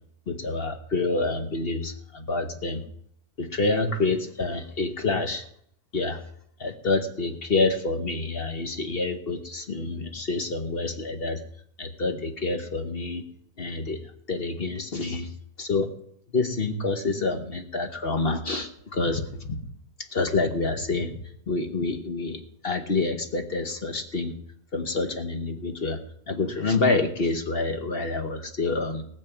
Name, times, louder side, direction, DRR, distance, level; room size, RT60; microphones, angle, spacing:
voice 1, 0.3-2.8 3.4-5.4 5.9-6.2 6.6-11.4 11.8-13.2 13.6-14.0 14.3-15.3 15.6-15.9 16.3-19.6 20.1-21.1 21.5-24.3 24.7-26.0 26.3-29.0, left 3 dB, 40° left, 6 dB, 1.0 m, -27 dB
19.0 x 7.1 x 6.0 m, 0.68 s
omnidirectional pair, 1.8 m